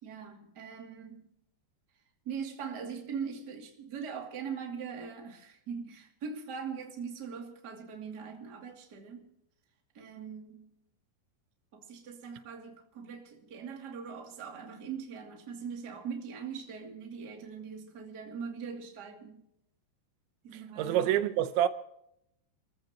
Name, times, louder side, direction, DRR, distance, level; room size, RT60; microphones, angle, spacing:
voice 1, 0.0-1.3 2.2-9.3 9.9-10.7 11.7-19.5 20.4-21.1, right 6 dB, 30° right, 2.1 m, -41 dB
voice 2, 20.8-21.7, right 11 dB, 85° right, 3.2 m, -26 dB
30.0 x 14.5 x 2.9 m
omnidirectional pair, 5.2 m